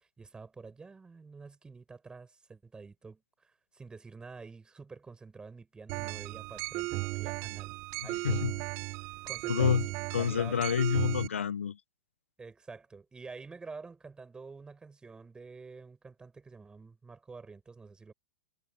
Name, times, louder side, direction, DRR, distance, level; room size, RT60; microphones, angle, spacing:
voice 1, 0.0-7.8 8.0-8.4 9.2-10.7 12.4-18.1, right 4 dB, 10° right, 6.0 m, -48 dB
sound 1, 5.9-11.3, right 24 dB, 40° right, 0.9 m, -36 dB
voice 2, 9.5-9.9 10.1-11.8, left 8 dB, 85° left, 1.0 m, -28 dB
hypercardioid pair, 115°, 7 cm